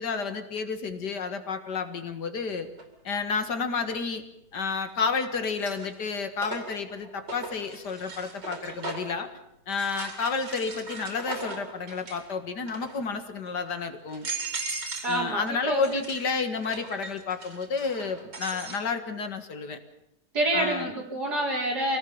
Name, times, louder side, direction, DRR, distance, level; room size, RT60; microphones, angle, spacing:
voice 1, 0.0-2.7 3.0-4.3 4.5-9.3 9.7-14.3 15.1-19.8 20.5-20.9, left 5 dB, 70° left, 8 dB, 2.4 m, -31 dB
sound 1, 2.8-2.9 4.6-5.0 5.4-9.2 9.7-12.3 12.6-13.1 13.7-13.8 14.1-15.2 15.5-18.8, right 3 dB, 90° right, 4.0 m, -38 dB
voice 2, 15.0-16.0 20.3-22.0, right 1 dB, 65° right, 0 dB, 5.3 m, -27 dB
24.5 x 18.0 x 7.2 m, 0.83 s
omnidirectional pair, 1.9 m